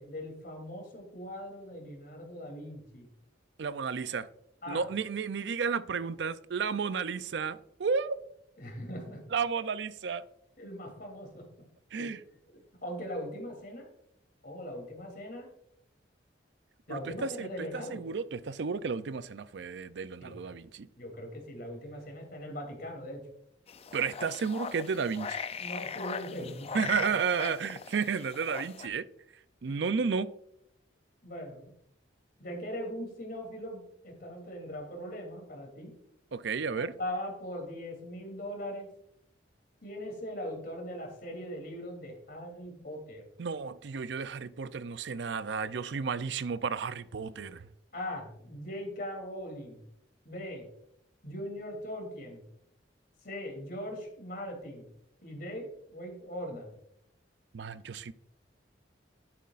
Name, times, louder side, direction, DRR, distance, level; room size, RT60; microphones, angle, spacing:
voice 1, 0.0-3.1 4.6-4.8 8.6-9.2 10.6-11.4 12.0-12.1 12.8-13.9 14.4-15.5 16.9-18.0 20.2-20.5 21.0-23.2 25.6-26.9 29.7-29.8 31.2-31.7 32.4-35.9 36.8-38.9 39.8-43.2 47.9-49.8 50.2-50.6 51.2-52.4 53.2-54.9 55.2-56.7, equal, 55° left, 3.0 m, -40 dB
voice 2, 3.6-4.3 4.7-8.2 9.3-10.2 11.9-12.2 16.9-20.9 23.9-25.4 26.7-29.1 29.6-30.3 36.3-36.9 43.4-47.7 57.5-58.1, right 5 dB, 65° right, 0.5 m, -32 dB
sound 1, 23.7-28.9, left 6 dB, 35° left, 0.4 m, -39 dB
11.0 x 9.4 x 2.5 m
head